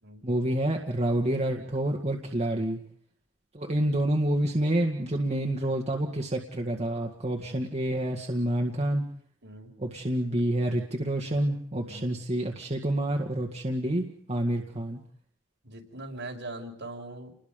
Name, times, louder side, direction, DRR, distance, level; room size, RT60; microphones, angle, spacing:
voice 1, 0.2-2.8 3.5-9.1 9.8-15.0, right 1 dB, 35° right, 1 dB, 1.9 m, -28 dB
voice 2, 9.4-9.7 11.8-12.1 15.6-17.3, right 2 dB, 65° right, 1 dB, 6.1 m, -41 dB
30.0 x 21.5 x 5.3 m, 0.62 s
head